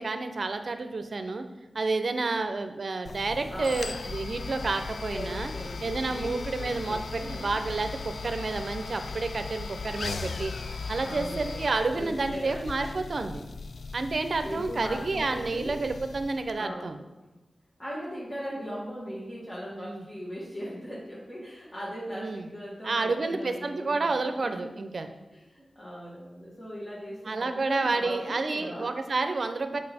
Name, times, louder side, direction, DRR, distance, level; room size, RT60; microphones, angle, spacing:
voice 1, 0.0-1.4 1.7-5.5 5.8-10.5 10.9-13.4 13.9-17.0 19.7-20.0 22.1-22.5 22.8-25.1 27.3-29.8, right 3 dB, 60° right, 8 dB, 0.6 m, -30 dB
sound 1, 3.0-16.5, left 4 dB, 75° left, 0.3 m, -38 dB
voice 2, 3.5-4.0 4.6-6.3 6.6-7.6 11.0-11.6 11.9-12.7 14.4-15.8 16.5-16.9 17.8-24.7 25.3-28.9, equal, 30° left, -7 dB, 1.7 m, -39 dB
6.6 x 4.7 x 4.2 m, 1.1 s
wide cardioid pair, 75°, 0 cm